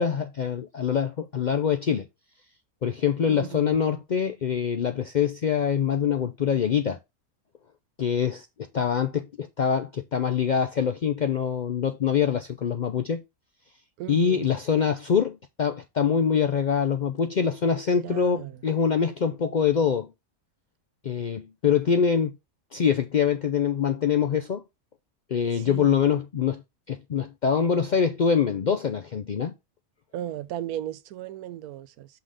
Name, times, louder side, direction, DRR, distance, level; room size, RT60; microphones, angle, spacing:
voice 1, 0.0-2.1 2.8-7.0 8.0-8.5 8.7-13.2 14.1-20.1 21.0-22.3 22.7-24.6 25.3-26.6 26.9-29.5, left 7 dB, 90° left, 0.4 m, -24 dB
voice 2, 3.3-3.8 14.0-14.5 18.0-18.5 25.5-25.9 30.1-32.1, right 12 dB, 85° right, 1.1 m, -36 dB
5.8 x 3.9 x 4.9 m
omnidirectional pair, 1.5 m